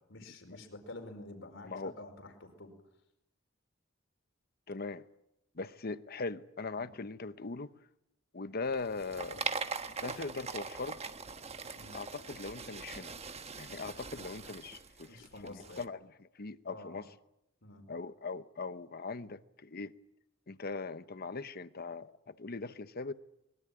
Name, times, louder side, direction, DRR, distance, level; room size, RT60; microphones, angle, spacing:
voice 1, 0.1-2.7 6.8-6.9 11.7-12.0 15.1-15.8 16.7-17.0 17.6-17.9, left 2 dB, 70° left, 4.8 m, -49 dB
voice 2, 4.7-5.0 5.5-7.7 8.3-9.5 10.0-11.0 11.9-13.1 13.6-15.1 15.4-17.0 17.9-19.9 20.5-23.1, left 3 dB, 50° left, 1.0 m, -40 dB
sound 1, 8.7-15.8, right 5 dB, 30° right, 1.3 m, -41 dB
23.5 x 21.5 x 8.9 m
head